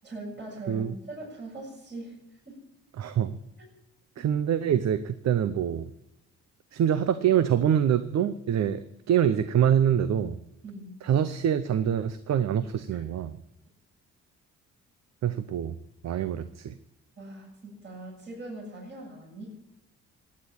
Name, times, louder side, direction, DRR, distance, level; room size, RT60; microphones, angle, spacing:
voice 1, 0.0-2.6 3.6-3.7 4.2-4.3 10.6-11.0 12.9-13.0 17.2-19.5, right 2 dB, 35° right, -5 dB, 7.6 m, -41 dB
voice 2, 3.0-3.4 4.2-5.9 6.7-10.4 11.0-13.4 15.2-15.8 16.0-16.7, right 9 dB, 60° right, 13 dB, 0.8 m, -25 dB
16.5 x 9.8 x 8.7 m, 0.87 s
cardioid pair, 90°, 30 cm